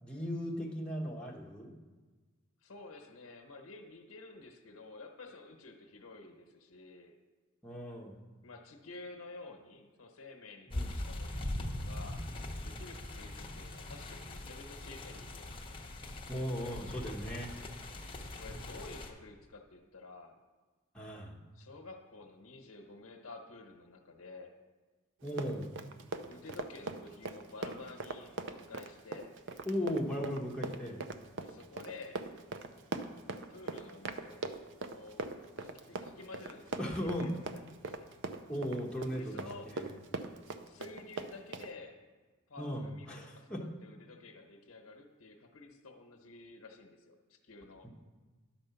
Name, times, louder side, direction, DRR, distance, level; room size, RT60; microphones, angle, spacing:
voice 1, 0.0-1.7 7.6-8.2 10.7-10.9 16.3-17.5 20.9-21.4 25.2-25.7 29.6-31.0 36.8-37.3 38.5-39.8 42.6-43.6 47.8-47.9, equal, 5° left, -3 dB, 1.2 m, -37 dB
voice 2, 2.6-7.1 8.4-12.2 12.6-15.5 18.3-20.4 21.5-24.5 26.3-29.3 31.4-32.2 33.3-34.5 34.9-35.2 35.6-38.1 39.2-39.7 40.4-42.0 42.5-47.9, left 3 dB, 85° left, 3 dB, 1.0 m, -51 dB
sound 1, 10.7-19.1, left 1 dB, 25° left, 0.9 m, -41 dB
Run, 25.2-41.7, right 3 dB, 60° right, 0.5 m, -41 dB
10.5 x 4.4 x 6.9 m, 1.3 s
head